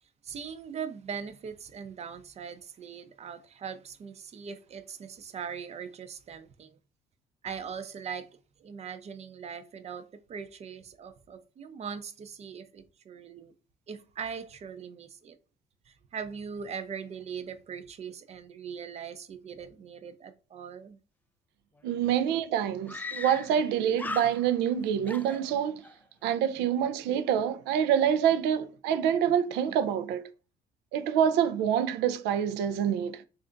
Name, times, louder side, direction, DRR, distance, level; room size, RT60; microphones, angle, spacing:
voice 1, 0.2-6.8 7.4-8.3 8.6-13.5 13.9-15.4 15.9-21.0, right 6 dB, 40° right, 0.6 m, -40 dB
Screaming, 21.8-21.9 22.1-22.2 22.9-23.7 23.9-24.7 25.1-26.0, left 3 dB, 10° left, 0.3 m, -39 dB
voice 2, 21.8-25.8 26.2-30.3 30.9-33.2, right 9 dB, 90° right, 0.5 m, -26 dB
3.3 x 2.5 x 3.8 m
cardioid pair, 110°, 17 cm